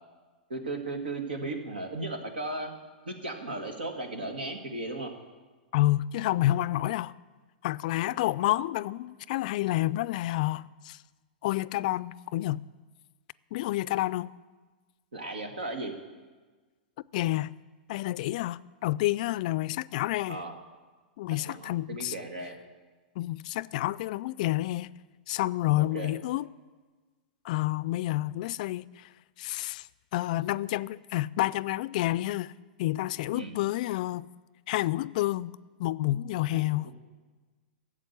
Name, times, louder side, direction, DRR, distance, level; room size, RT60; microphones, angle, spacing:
voice 1, 0.5-2.7 3.1-5.1 15.1-15.9 20.3-20.5 21.5-22.6 25.8-26.1 33.3-33.5 36.5-36.9, right 2 dB, 85° right, 1.9 m, -36 dB
voice 2, 5.7-7.1 7.6-11.0 11.4-12.6 13.5-14.3 17.1-17.5 17.9-20.4 21.2-22.1 23.2-24.9 25.3-26.5 27.4-29.1 29.4-32.5 32.8-34.3 34.7-35.5 35.8-36.9, left 16 dB, 55° left, 0.3 m, -29 dB
13.0 x 7.5 x 8.2 m
hypercardioid pair, 115°, 5 cm